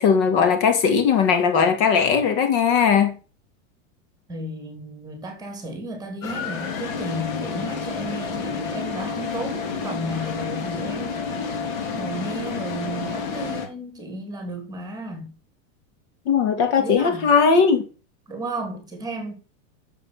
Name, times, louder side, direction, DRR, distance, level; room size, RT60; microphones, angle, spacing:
voice 1, 0.0-3.1 16.3-17.8, left 6 dB, 50° left, 2.5 m, -18 dB
voice 2, 4.3-15.3 16.8-17.3 18.3-19.4, right 1 dB, 10° right, 3.3 m, -33 dB
sound 1, 6.2-13.7, left 5 dB, 75° left, 3.6 m, -30 dB
8.3 x 7.6 x 5.8 m
supercardioid pair, 150°, 41 cm